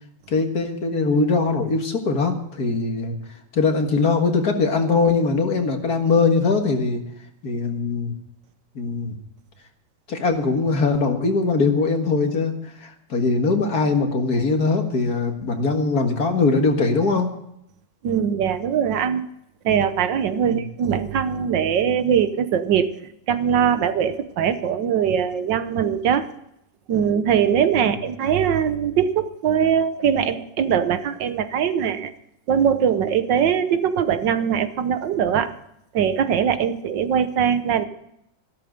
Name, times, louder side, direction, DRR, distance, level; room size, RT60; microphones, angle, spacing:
voice 1, 0.3-3.2 3.5-7.0 7.4-8.1 8.8-9.1 10.1-17.3 20.4-20.6 27.8-27.9, left 4 dB, 60° left, 4 dB, 2.2 m, -21 dB
voice 2, 18.0-19.3 19.6-22.9 23.3-26.3 26.9-32.1 32.5-35.5 35.9-37.9, right 8 dB, 80° right, 11 dB, 1.6 m, -21 dB
14.5 x 12.5 x 5.2 m, 0.77 s
omnidirectional pair, 2.0 m